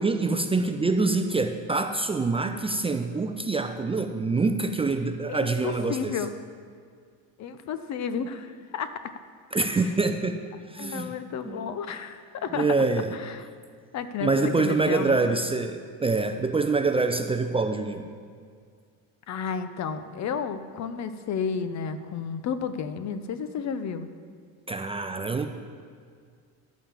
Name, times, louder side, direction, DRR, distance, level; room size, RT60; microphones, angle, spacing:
voice 1, 0.0-6.1 9.5-10.4 10.7-11.1 11.5-11.8 12.5-13.2 14.2-18.1 24.7-25.5, right 3 dB, 15° right, 6 dB, 0.5 m, -25 dB
voice 2, 5.3-6.3 7.4-9.1 9.6-9.9 10.8-12.7 13.1-13.5 13.9-15.4 19.3-24.1, left 6 dB, 45° left, 11 dB, 0.7 m, -32 dB
11.5 x 5.7 x 7.3 m, 2.1 s
cardioid pair, 115°, 38 cm